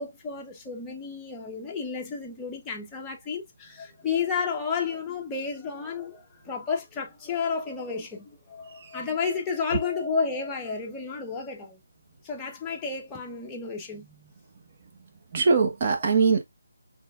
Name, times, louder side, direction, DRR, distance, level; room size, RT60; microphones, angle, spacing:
voice 1, 0.0-11.8 12.2-14.3, left 5 dB, 10° left, 0.8 m, -32 dB
voice 2, 8.7-9.1 9.7-9.8 14.8-14.9 15.3-16.4, right 5 dB, 35° right, 1.0 m, -23 dB
4.4 x 3.3 x 2.4 m
figure-of-eight pair, 155°, 0 cm